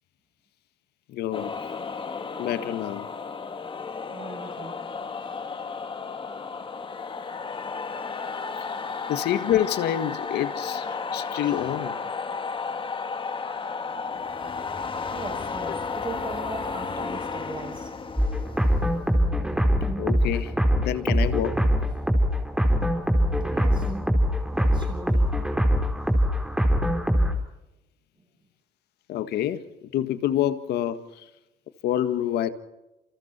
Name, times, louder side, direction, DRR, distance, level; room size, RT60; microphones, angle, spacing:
voice 1, 1.1-1.5 2.4-3.1 9.1-12.0 15.7-15.8 20.0-21.6 29.1-29.6 29.9-31.3 31.8-32.5, left 11 dB, 75° left, 1.9 m, -27 dB
sound 1, 1.3-19.9, left 5 dB, 30° left, 2.1 m, -33 dB
voice 2, 4.1-4.9 5.2-5.3 11.3-11.5 15.1-17.9 23.5-24.0 24.5-25.4, right 4 dB, 30° right, 7.5 m, -39 dB
sound 2, 18.2-27.3, equal, 5° right, 4.0 m, -23 dB
29.0 x 28.5 x 4.5 m
cardioid pair, 110°, 17 cm